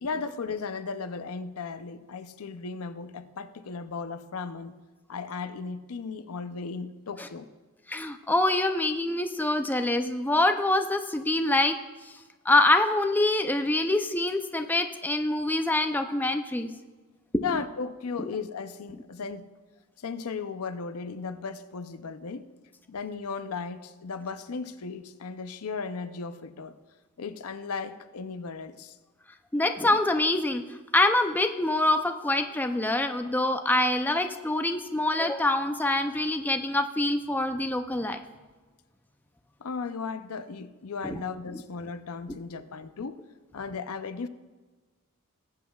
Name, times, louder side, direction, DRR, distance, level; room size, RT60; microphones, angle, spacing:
voice 1, 0.0-4.8 5.1-7.5 17.4-19.5 20.0-22.4 22.9-26.8 27.2-29.0 39.6-43.2 43.5-44.3, left 5 dB, 75° left, 10 dB, 0.6 m, -36 dB
voice 2, 7.9-11.8 12.5-16.7 17.3-17.6 18.2-18.3 29.5-30.6 30.9-38.2 41.0-41.2 41.5-41.6, left 2 dB, 10° left, 6 dB, 0.4 m, -25 dB
19.5 x 8.3 x 2.3 m, 1.3 s
head